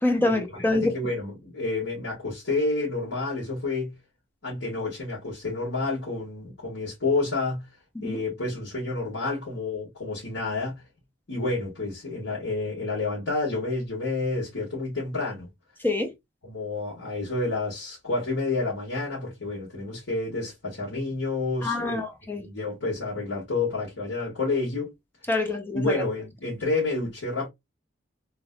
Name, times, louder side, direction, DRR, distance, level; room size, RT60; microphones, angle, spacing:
voice 1, 0.0-0.9 8.0-8.2 15.8-16.1 21.6-22.5 25.3-26.0, left 2 dB, 10° left, 0.8 m, -26 dB
voice 2, 0.7-3.9 4.4-7.7 8.0-10.8 11.3-15.5 16.4-22.0 22.3-24.9 25.7-27.5, left 3 dB, 75° left, 1.7 m, -29 dB
3.4 x 3.0 x 2.3 m
head